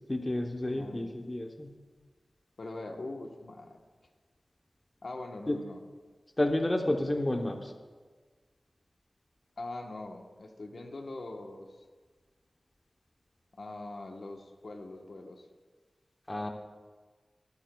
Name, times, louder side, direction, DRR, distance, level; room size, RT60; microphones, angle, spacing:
voice 1, 0.1-1.7 5.5-5.6 6.4-7.7 16.3-16.5, left 1 dB, 25° left, 3 dB, 0.8 m, -30 dB
voice 2, 0.7-1.1 2.6-3.8 5.0-5.8 9.6-11.7 13.6-15.5, left 2 dB, 65° left, 3 dB, 1.1 m, -42 dB
21.5 x 9.0 x 2.3 m, 1.4 s
wide cardioid pair, 75°, 0 cm